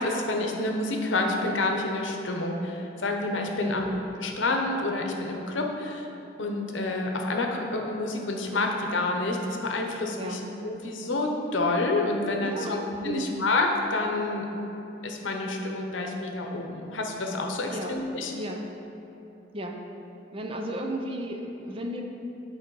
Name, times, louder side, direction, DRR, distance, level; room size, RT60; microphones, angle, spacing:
voice 1, 0.0-3.9 4.2-6.1 6.4-14.5 15.0-18.3, left 2 dB, 85° left, 2 dB, 0.8 m, -28 dB
voice 2, 3.6-4.0 10.1-10.5 12.4-13.3 17.7-17.9 18.3-18.6 19.5-19.7 20.3-22.1, right 1 dB, 30° right, 2 dB, 0.5 m, -34 dB
9.1 x 4.0 x 4.7 m, 3.0 s
head